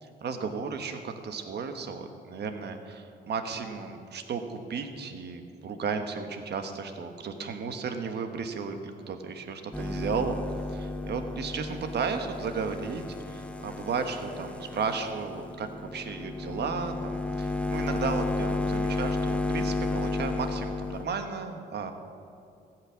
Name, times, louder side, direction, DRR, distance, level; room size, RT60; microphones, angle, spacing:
voice 1, 0.0-8.8 9.1-10.4 10.7-21.9, right 5 dB, 55° right, 6 dB, 1.3 m, -34 dB
sound 1, 9.7-21.0, left 3 dB, 5° left, 0.8 m, -32 dB
14.5 x 6.0 x 8.4 m, 2.6 s
cardioid pair, 90°, 20 cm